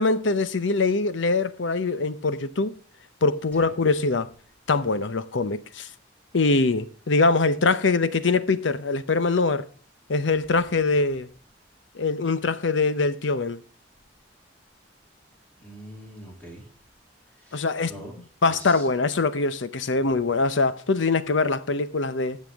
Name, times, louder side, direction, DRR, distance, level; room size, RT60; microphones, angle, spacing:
voice 1, 0.0-2.7 3.2-4.3 4.7-5.9 6.3-9.7 10.1-11.3 11.9-13.6 17.5-17.9 18.4-22.4, left 3 dB, 80° left, 0.7 m, -23 dB
voice 2, 15.6-16.7 17.3-18.2 18.5-18.9, equal, 10° left, 2.8 m, -43 dB
12.5 x 7.5 x 3.5 m
head